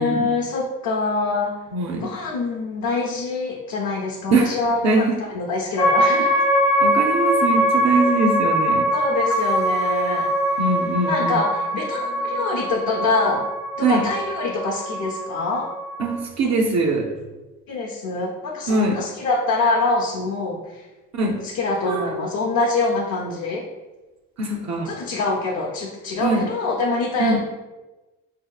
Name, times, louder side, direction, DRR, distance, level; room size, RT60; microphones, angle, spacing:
voice 1, 0.0-1.5 2.0-6.5 8.9-10.7 11.1-13.5 13.8-15.7 17.7-20.9 21.4-23.7 24.8-27.4, left 3 dB, 65° left, -2 dB, 0.6 m, -25 dB
voice 2, 1.7-2.2 4.3-4.5 4.8-5.2 6.8-8.9 10.6-11.4 13.8-14.1 16.0-17.1 18.7-19.0 21.1-21.4 21.9-22.1 24.4-24.9 26.2-26.5 27.2-27.4, right 3 dB, 60° right, 0 dB, 0.6 m, -22 dB
sound 1, 5.8-16.2, equal, 10° left, 0.5 m, -22 dB
4.1 x 2.7 x 2.3 m, 1.1 s
cardioid pair, 95°, 32 cm